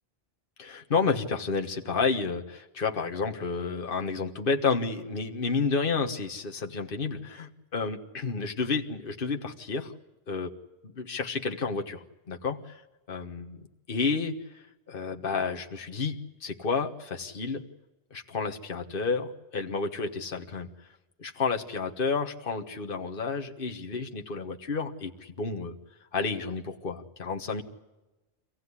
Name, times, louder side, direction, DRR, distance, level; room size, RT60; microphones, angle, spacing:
voice 1, 0.6-9.9 10.3-10.5 10.9-12.6 13.1-17.6 18.1-20.7 21.2-25.8 26.1-27.6, left 4 dB, 55° left, 4 dB, 1.6 m, -31 dB
26.0 x 16.0 x 9.8 m, 1.1 s
omnidirectional pair, 1.1 m